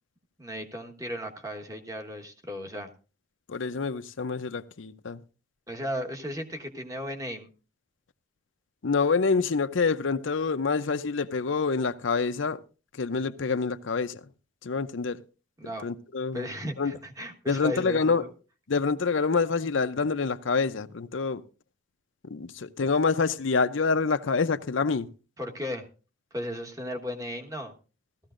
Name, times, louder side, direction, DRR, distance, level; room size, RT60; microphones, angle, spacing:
voice 1, 0.4-2.9 5.7-7.5 15.6-15.9 16.3-18.3 25.4-25.8 26.3-27.7, equal, 15° right, 1.3 m, -35 dB
voice 2, 3.5-5.2 8.8-12.6 12.9-14.2 14.6-15.2 15.8-16.5 16.8-16.9 17.5-18.3 18.7-21.4 22.2-25.1, left 4 dB, 75° left, 0.6 m, -27 dB
16.0 x 14.0 x 2.5 m
head